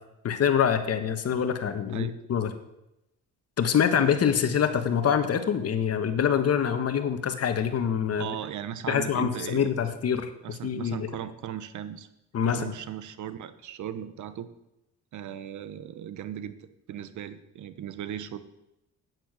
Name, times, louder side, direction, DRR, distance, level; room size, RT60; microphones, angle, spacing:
voice 1, 0.2-2.5 3.6-8.3 8.9-10.3 10.6-11.1 12.3-12.7, left 8 dB, 55° left, 8 dB, 1.5 m, -25 dB
voice 2, 8.2-9.9 10.4-12.1 12.5-14.5 15.1-18.4, right 10 dB, 75° right, 13 dB, 1.1 m, -37 dB
9.9 x 9.6 x 8.2 m, 0.89 s
cardioid pair, 90°, 30 cm